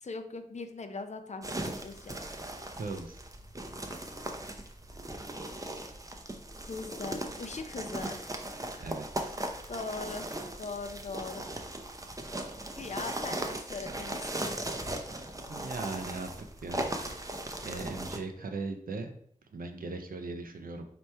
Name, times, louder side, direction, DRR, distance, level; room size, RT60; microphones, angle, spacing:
voice 1, 0.0-2.2 6.6-8.2 9.7-10.3 10.6-11.4 12.8-14.5, left 4 dB, 55° left, 7 dB, 0.5 m, -40 dB
sound 1, 1.4-18.2, right 1 dB, 25° right, 0.5 m, -38 dB
voice 2, 2.7-3.2 8.8-9.4 15.5-16.3 16.6-16.9 17.1-17.2 17.6-19.1 19.5-20.8, right 3 dB, 85° right, 6 dB, 0.5 m, -38 dB
4.4 x 3.0 x 3.3 m, 0.65 s
wide cardioid pair, 70°, 14 cm